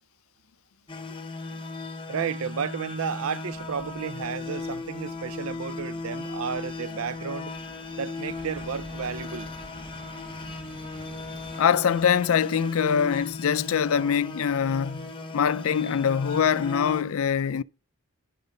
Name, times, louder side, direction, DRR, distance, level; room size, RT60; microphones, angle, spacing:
sound 1, 0.9-17.0, left 3 dB, 25° left, 1.0 m, -37 dB
voice 1, 2.1-7.5 7.9-9.5, right 7 dB, 70° right, 0.4 m, -32 dB
sound 2, 3.5-11.7, right 1 dB, 30° right, 0.9 m, -49 dB
voice 2, 11.6-17.6, left 7 dB, 70° left, 0.4 m, -24 dB
11.5 x 5.5 x 5.1 m
head